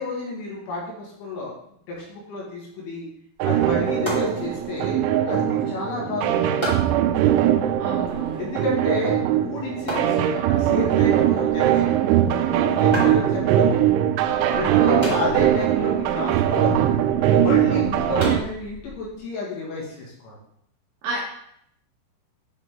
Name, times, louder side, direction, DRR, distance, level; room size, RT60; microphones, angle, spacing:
voice 1, 0.0-1.6 1.9-3.1 3.4-5.0 5.3-6.8 8.4-11.9 12.2-13.8 14.5-16.9 17.4-20.4, left 3 dB, 75° left, -4 dB, 3.9 m, -30 dB
sound 1, 3.3-19.2, equal, 15° left, 0.9 m, -37 dB
sound 2, 3.4-18.4, right 11 dB, 85° right, 2.9 m, -21 dB
voice 2, 7.8-8.5 17.7-18.2 21.0-21.2, right 2 dB, 70° right, -5 dB, 2.7 m, -32 dB
9.7 x 3.5 x 3.6 m, 0.71 s
omnidirectional pair, 5.6 m